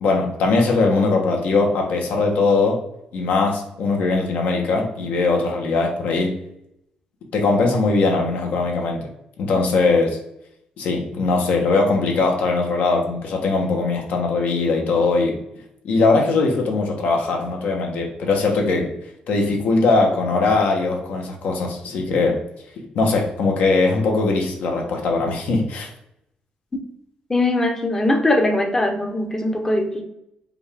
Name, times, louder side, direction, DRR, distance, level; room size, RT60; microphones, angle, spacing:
voice 1, 0.0-2.8 3.1-6.4 7.3-9.0 9.4-10.2 10.8-15.4 15.8-18.9 19.3-22.4 22.9-25.9, left 3 dB, 75° left, 1 dB, 1.0 m, -20 dB
voice 2, 27.3-30.0, left 1 dB, 15° left, 3 dB, 0.6 m, -20 dB
5.1 x 2.4 x 3.3 m, 0.79 s
cardioid pair, 155°, 3 cm